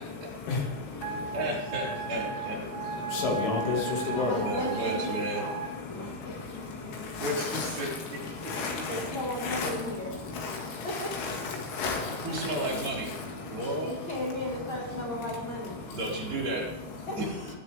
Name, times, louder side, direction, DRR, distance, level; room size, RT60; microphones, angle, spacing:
voice 1, 0.3-1.4 2.6-4.4 5.1-5.3 5.8-7.9 8.3-9.1 9.4-9.7 10.0-12.8 13.4-13.7 15.9-16.0, left 4 dB, 80° left, 4.6 m, -33 dB
Wind instrument woodwind instrument, 1.0-5.7, right 5 dB, 65° right, 4.3 m, -36 dB
voice 2, 1.3-2.6 4.0-5.4 7.2-8.2 12.2-13.2 13.5-14.0 15.9-16.7 17.2-17.3, right 1 dB, 45° right, 4.6 m, -33 dB
voice 3, 3.8-5.6 5.9-6.4 8.9-10.1 10.8-11.1 13.8-15.8 17.1-17.2, left 1 dB, 60° left, 1.3 m, -35 dB
20.5 x 8.2 x 3.5 m
omnidirectional pair, 5.5 m